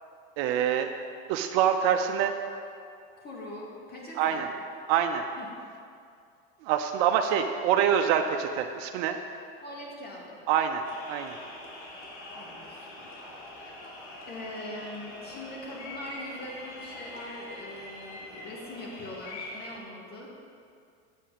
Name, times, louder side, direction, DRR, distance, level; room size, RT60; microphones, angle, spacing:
voice 1, 0.4-0.9 1.3-2.3 4.2-4.5 4.9-5.2 6.6-9.2 10.5-10.8 11.1-11.4, right 9 dB, 60° right, 5 dB, 0.7 m, -25 dB
voice 2, 3.2-4.4 5.4-5.5 9.6-10.4 12.3-13.7 14.3-20.3, left 1 dB, 30° left, -4 dB, 2.3 m, -42 dB
sound 1, 10.8-19.8, left 1 dB, 70° left, 2.1 m, -44 dB
7.3 x 5.4 x 7.1 m, 2.3 s
supercardioid pair, 115°, 32 cm